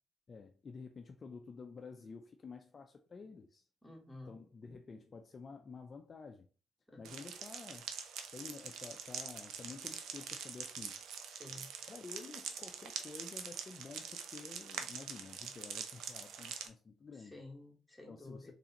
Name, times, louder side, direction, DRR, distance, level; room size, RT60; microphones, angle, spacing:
voice 1, 0.3-3.6 4.2-6.5 7.0-7.9 8.3-11.0 11.9-17.4 18.1-18.5, left 4 dB, 40° left, 0.4 m, -50 dB
voice 2, 3.8-4.3 4.6-4.8 6.9-7.2 11.3-11.7 17.2-18.5, left 2 dB, 5° left, 1.4 m, -52 dB
sound 1, 7.0-16.7, right 7 dB, 80° right, 0.6 m, -45 dB
3.8 x 3.3 x 2.9 m
cardioid pair, 90°, 0 cm